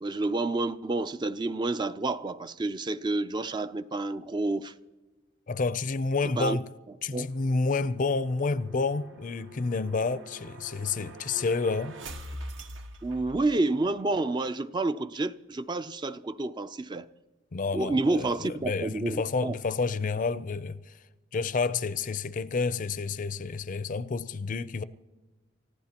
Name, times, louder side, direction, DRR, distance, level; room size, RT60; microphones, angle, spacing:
voice 1, 0.0-4.7 6.4-6.6 7.1-7.3 13.0-17.1 17.7-19.5, right 2 dB, 25° right, 0.4 m, -29 dB
voice 2, 5.5-6.6 7.0-12.0 17.5-21.0 21.3-24.8, left 4 dB, 45° left, 0.5 m, -29 dB
sound 1, 7.1-13.9, right 1 dB, 75° right, 1.4 m, -45 dB
29.0 x 15.0 x 2.9 m
head